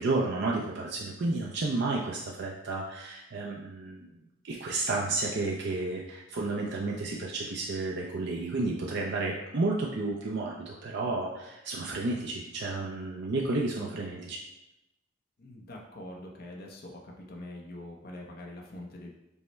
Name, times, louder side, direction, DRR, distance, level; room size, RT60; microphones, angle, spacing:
voice 1, 0.0-4.0 4.4-14.4, right 2 dB, 60° right, -2 dB, 0.5 m, -31 dB
voice 2, 15.4-19.2, left 1 dB, 50° left, -1 dB, 0.6 m, -44 dB
5.3 x 2.1 x 4.3 m, 0.94 s
head